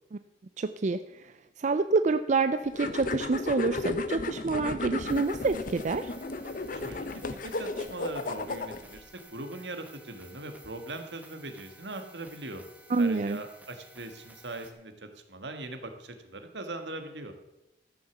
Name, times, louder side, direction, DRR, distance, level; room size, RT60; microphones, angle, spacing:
voice 1, 0.6-1.3 1.6-6.1 12.9-13.4, right 4 dB, 40° right, 10 dB, 0.4 m, -27 dB
sound 1, 2.7-9.0, left 3 dB, 50° left, 0.7 m, -34 dB
sound 2, 5.1-14.7, right 1 dB, 10° right, 1.5 m, -54 dB
voice 2, 6.5-12.6 13.0-17.3, right 2 dB, 75° right, 7 dB, 1.6 m, -41 dB
13.5 x 6.5 x 7.2 m, 0.94 s
head